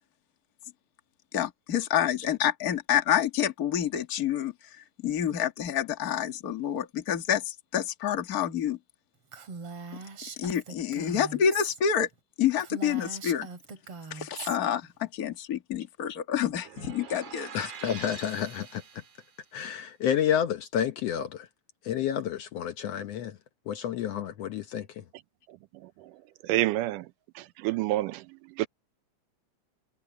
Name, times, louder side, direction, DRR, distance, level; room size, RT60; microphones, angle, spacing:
voice 1, 1.3-4.5 5.0-8.8 10.4-12.1 12.4-13.5 14.1-17.6, left 9 dB, 35° left, 1.7 m, -28 dB
Female speech woman speaking, 9.3-11.8 12.1-12.2 12.6-14.6, right 5 dB, 45° right, 3.1 m, -41 dB
sound 1, 16.6-19.4, right 7 dB, 60° right, 3.9 m, -45 dB
voice 2, 17.5-18.8 19.5-21.5 21.8-23.4 23.7-25.0, left 9 dB, 75° left, 1.5 m, -30 dB
voice 3, 26.4-27.1 27.4-28.3 28.6-28.7, right 16 dB, 80° right, 2.1 m, -27 dB
omnidirectional pair, 3.9 m